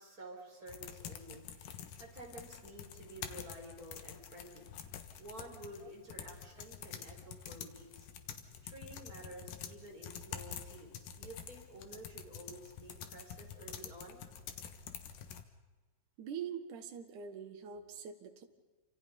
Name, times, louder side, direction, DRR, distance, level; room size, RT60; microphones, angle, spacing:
voice 1, 0.0-4.7 5.2-8.1 8.6-14.2, right 1 dB, 25° right, 0 dB, 5.1 m, -51 dB
sound 1, 0.7-15.4, left 8 dB, 70° left, 3.0 m, -48 dB
voice 2, 16.2-18.4, right 7 dB, 60° right, 5 dB, 3.0 m, -44 dB
28.5 x 26.0 x 5.4 m, 1.2 s
omnidirectional pair, 4.1 m